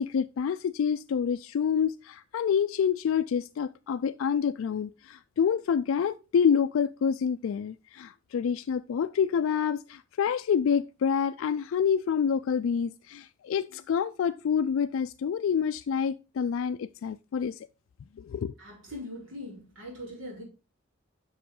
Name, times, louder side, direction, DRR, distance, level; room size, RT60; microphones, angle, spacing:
voice 1, 0.0-17.6 18.2-18.5, left 7 dB, 70° left, 0.3 m, -27 dB
voice 2, 18.6-20.4, left 1 dB, 70° right, 4.4 m, -41 dB
7.6 x 6.0 x 3.7 m
head